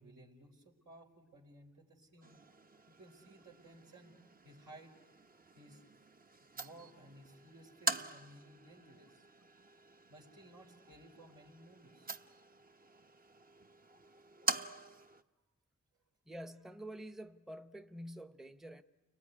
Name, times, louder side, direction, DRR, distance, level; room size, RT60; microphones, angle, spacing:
voice 1, 0.0-2.6 2.9-4.9 5.3-5.8 6.5-9.3 10.1-12.1, right 1 dB, 80° right, 4.4 m, -58 dB
sound 1, 2.2-15.2, right 2 dB, 30° right, 0.9 m, -44 dB
voice 2, 16.3-18.8, right 1 dB, ahead, 0.8 m, -48 dB
29.5 x 19.5 x 9.6 m
cardioid pair, 40°, 30 cm